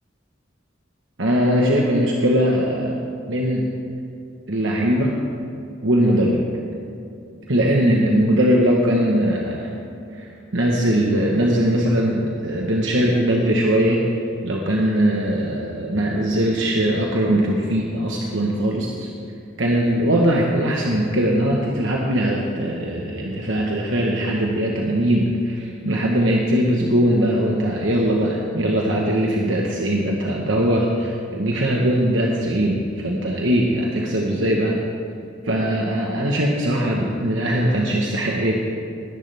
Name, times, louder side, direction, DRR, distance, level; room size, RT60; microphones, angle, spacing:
voice 1, 1.2-3.0 3.3-3.7 4.5-5.1 5.8-6.4 7.5-9.7 10.1-10.3 10.5-14.0 14.4-19.1 19.6-34.8 35.4-38.6, equal, 70° right, -1 dB, 1.2 m, -20 dB
20.0 x 11.0 x 3.5 m, 2.6 s
head